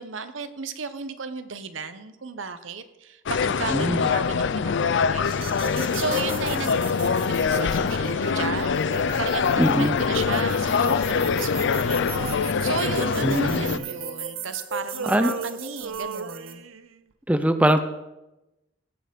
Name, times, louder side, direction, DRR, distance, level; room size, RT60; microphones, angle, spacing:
voice 1, 0.0-8.8 9.2-16.6, right 5 dB, 70° right, 11 dB, 0.9 m, -35 dB
sound 1, 3.3-13.8, left 5 dB, 60° left, 0.5 m, -24 dB
voice 2, 3.7-4.1 9.6-10.0 13.2-13.8 15.1-15.3 17.3-17.8, right 1 dB, 5° right, 9 dB, 0.5 m, -22 dB
sound 2, 5.2-16.5, right 3 dB, 50° right, 1.2 m, -37 dB
Male singing, 12.1-14.5 14.8-17.0, right 5 dB, 90° right, 0.6 m, -36 dB
16.0 x 6.7 x 5.2 m, 0.97 s
head